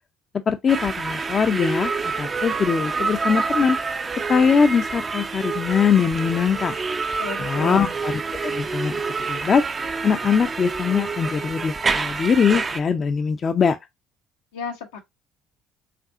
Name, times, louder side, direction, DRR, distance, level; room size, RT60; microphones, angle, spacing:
voice 1, 0.5-1.9 2.2-3.8 4.3-6.8 7.4-8.1 8.4-9.0 9.3-9.6 10.0-13.8, left 6 dB, 40° left, 0.5 m, -21 dB
sound 1, 0.7-12.8, right 4 dB, 35° right, 0.5 m, -27 dB
voice 2, 7.2-7.9 14.5-15.0, left 5 dB, 80° left, 0.9 m, -32 dB
5.1 x 2.7 x 2.5 m
hypercardioid pair, 55°, 0 cm